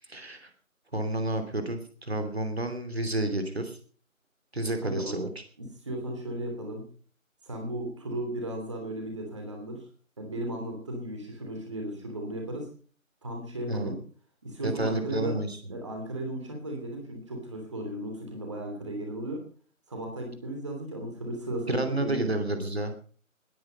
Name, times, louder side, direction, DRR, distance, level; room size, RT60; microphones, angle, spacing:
voice 1, 0.1-0.5 0.9-3.8 4.5-5.3 13.7-13.9 14.6-15.7 21.7-22.9, right 1 dB, 50° right, 7 dB, 3.0 m, -30 dB
voice 2, 4.8-5.2 5.6-6.9 7.4-9.8 10.2-12.7 13.2-14.0 14.4-15.4 15.7-19.5 19.9-22.2, right 1 dB, 20° right, 2 dB, 3.0 m, -35 dB
20.5 x 10.0 x 5.4 m, 0.43 s
figure-of-eight pair, 165°, 41 cm